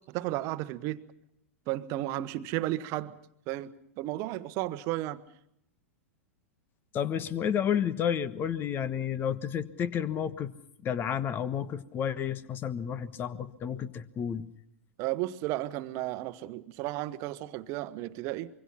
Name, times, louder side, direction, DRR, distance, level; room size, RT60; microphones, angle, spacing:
voice 1, 0.1-1.0 1.7-3.1 3.5-5.2 15.0-18.5, right 16 dB, 40° right, 1.2 m, -33 dB
voice 2, 6.9-10.5 10.8-14.5, left 8 dB, 30° left, 1.3 m, -31 dB
25.0 x 23.5 x 5.8 m
figure-of-eight pair, 95°, 7 cm